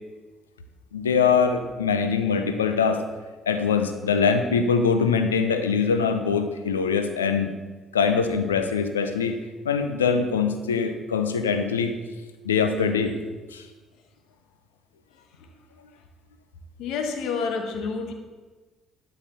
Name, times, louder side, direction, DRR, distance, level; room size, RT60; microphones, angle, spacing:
voice 1, 0.9-3.0 3.5-7.5 7.9-11.9 12.4-13.2 13.5-13.6, left 6 dB, 85° left, 8 dB, 0.6 m, -23 dB
voice 2, 16.8-18.1, left 5 dB, 65° left, 5 dB, 1.2 m, -29 dB
11.5 x 4.9 x 6.7 m, 1.3 s
figure-of-eight pair, 45°, 0 cm